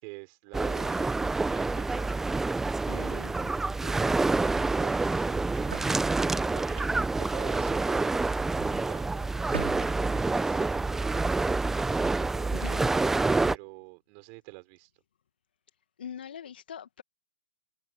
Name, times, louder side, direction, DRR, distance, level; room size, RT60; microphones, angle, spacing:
voice 1, 0.0-2.3 2.9-3.3 3.8-5.9 6.3-6.9 7.2-8.2 8.9-9.8 10.1-12.7 13.4-14.9, right 40 dB or more, 35° right, 6.0 m, -48 dB
sound 1, 0.5-13.6, right 3 dB, 5° right, 1.0 m, -27 dB
voice 2, 2.9-3.5 12.5-12.8 16.0-17.0, left 8 dB, 60° left, 1.7 m, -42 dB
sound 2, 9.5-10.9, right 6 dB, 70° right, 4.2 m, -46 dB
figure-of-eight pair, 120°, 6 cm